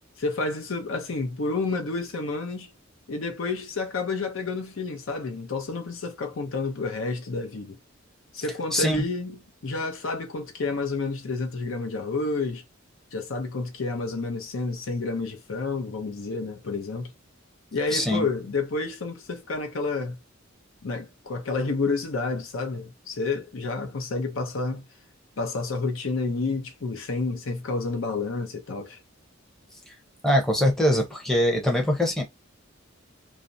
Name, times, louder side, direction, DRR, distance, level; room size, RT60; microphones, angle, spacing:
voice 1, 0.2-2.7 3.1-7.8 8.3-12.6 13.1-17.1 17.7-20.2 20.8-24.8 25.4-29.0, left 3 dB, 75° left, 0.6 m, -30 dB
voice 2, 8.7-9.0 17.9-18.3 29.9-30.0 30.2-32.2, equal, 5° left, 0.6 m, -23 dB
2.4 x 2.0 x 2.6 m
head